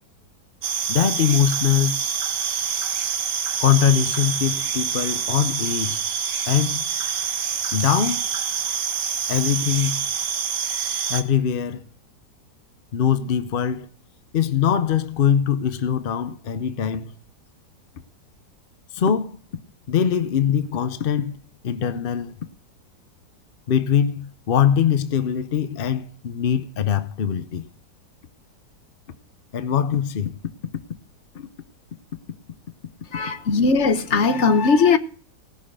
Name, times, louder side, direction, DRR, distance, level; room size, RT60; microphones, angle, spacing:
sound 1, 0.6-11.2, right 7 dB, 65° right, 1.7 m, -26 dB
voice 1, 0.9-2.1 3.6-6.0 6.5-6.9 7.7-8.3 9.3-10.1 11.1-11.8 12.9-13.9 14.3-17.1 18.9-19.4 19.9-21.4 21.6-22.3 23.7-27.7 29.5-30.4 31.3-31.5, left 8 dB, 60° left, 0.5 m, -22 dB
voice 2, 33.1-35.0, left 4 dB, 45° left, 1.2 m, -18 dB
18.0 x 6.5 x 6.1 m
omnidirectional pair, 1.9 m